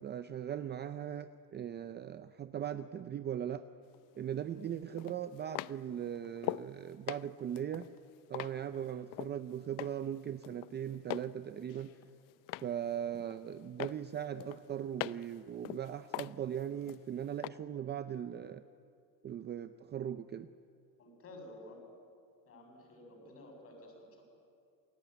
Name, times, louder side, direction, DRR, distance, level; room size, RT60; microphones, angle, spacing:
voice 1, 0.0-3.6 4.1-7.9 8.3-11.9 12.6-18.6 19.2-20.5, right 9 dB, 25° right, 11 dB, 0.5 m, -39 dB
sound 1, 3.9-4.0 5.0-6.7 7.1-9.4 9.8-10.2 10.4-11.3 11.7-12.8 13.1-13.5 13.8-15.3 15.6-17.0 17.4-17.5, left 18 dB, 50° left, 0.5 m, -41 dB
voice 2, 21.0-21.8 22.5-24.2, left 1 dB, 30° left, 3 dB, 7.2 m, -52 dB
28.5 x 20.0 x 9.3 m, 2.5 s
cardioid pair, 145°, 43 cm